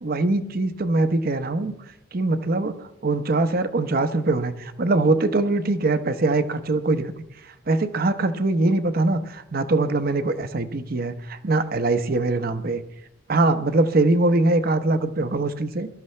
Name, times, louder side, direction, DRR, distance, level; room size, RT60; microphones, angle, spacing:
voice 1, 0.0-1.7 2.1-7.1 7.7-12.8 13.3-15.9, right 2 dB, 55° right, 10 dB, 0.8 m, -22 dB
22.5 x 12.5 x 3.2 m, 0.88 s
head